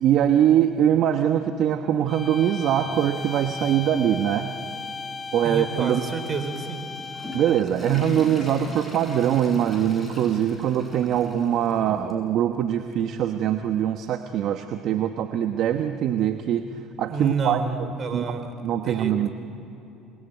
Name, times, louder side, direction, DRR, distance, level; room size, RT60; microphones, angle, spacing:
voice 1, 0.0-4.5 5.3-6.0 7.3-16.6 17.0-18.4 18.6-19.3, right 10 dB, 65° right, 7 dB, 1.2 m, -23 dB
sound 1, 2.1-7.8, left 4 dB, 30° left, 1.1 m, -36 dB
voice 2, 5.4-6.9 17.1-18.5 18.8-19.3, right 4 dB, 45° right, 8 dB, 3.7 m, -30 dB
Water / Toilet flush, 6.8-11.8 12.1-12.2 12.9-13.0 14.3-14.4, left 1 dB, 15° left, 6.7 m, -40 dB
28.0 x 21.0 x 9.2 m, 3.0 s
supercardioid pair, 75°, 0 cm